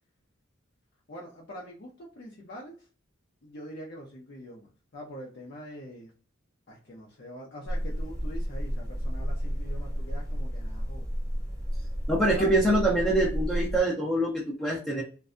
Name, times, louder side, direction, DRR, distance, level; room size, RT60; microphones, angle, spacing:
voice 1, 1.1-2.8 3.4-6.1 6.7-11.1 12.4-12.5, equal, 50° left, -2 dB, 0.6 m, -44 dB
sound 1, 7.7-13.8, equal, 15° right, 0.8 m, -32 dB
voice 2, 12.1-15.0, right 1 dB, 5° left, -5 dB, 0.5 m, -25 dB
2.5 x 2.2 x 2.4 m, 0.38 s
head